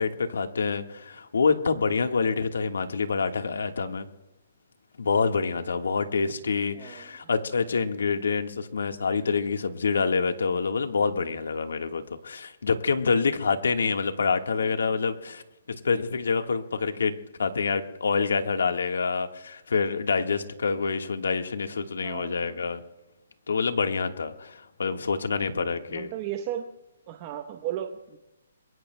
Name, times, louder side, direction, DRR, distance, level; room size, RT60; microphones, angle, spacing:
voice 1, 0.0-4.1 5.0-15.4 15.7-22.8 23.5-26.1, left 5 dB, 85° left, 7 dB, 1.5 m, -27 dB
voice 2, 6.7-7.3 14.6-14.8 22.0-22.7 25.5-26.7 27.1-28.2, right 10 dB, 25° right, 4 dB, 0.9 m, -36 dB
28.5 x 22.5 x 2.2 m, 0.95 s
hypercardioid pair, 170°, 0 cm